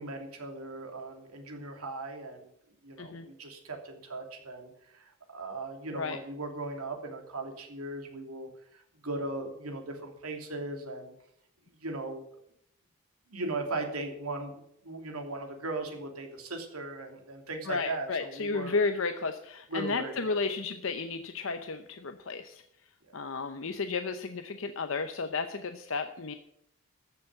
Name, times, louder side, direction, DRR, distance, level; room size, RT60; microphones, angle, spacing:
voice 1, 0.0-2.5 2.8-11.1 11.8-12.2 13.3-14.5 14.8-18.8 19.7-20.4 23.0-23.1, right 2 dB, 85° right, 3 dB, 2.9 m, -38 dB
voice 2, 17.7-22.6 23.1-26.3, left 4 dB, 65° left, 8 dB, 0.8 m, -33 dB
14.5 x 7.2 x 8.7 m, 0.73 s
head